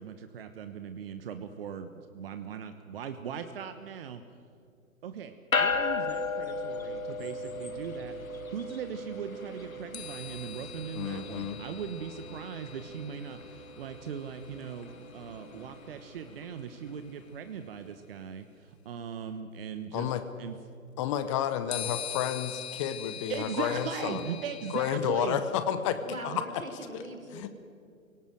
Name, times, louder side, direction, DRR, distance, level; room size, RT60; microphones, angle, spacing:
voice 1, 0.0-4.2 5.0-8.2 8.5-20.1 20.4-20.6 23.3-25.4 26.3-26.4, right 7 dB, 45° right, 9 dB, 1.2 m, -39 dB
sound 1, 5.5-17.1, left 4 dB, 80° left, 2.2 m, -36 dB
sound 2, 9.9-15.6 16.9-17.0 21.7-24.9, left 8 dB, 50° left, 1.0 m, -43 dB
voice 2, 10.9-11.6 19.9-20.2 21.0-24.2 24.7-26.5 26.9-27.0 27.3-27.5, left 9 dB, 25° left, 11 dB, 0.9 m, -31 dB
voice 3, 26.0-27.5, right 1 dB, 85° right, 5 dB, 4.2 m, -42 dB
27.5 x 18.0 x 7.7 m, 2.3 s
figure-of-eight pair, 130°, 41 cm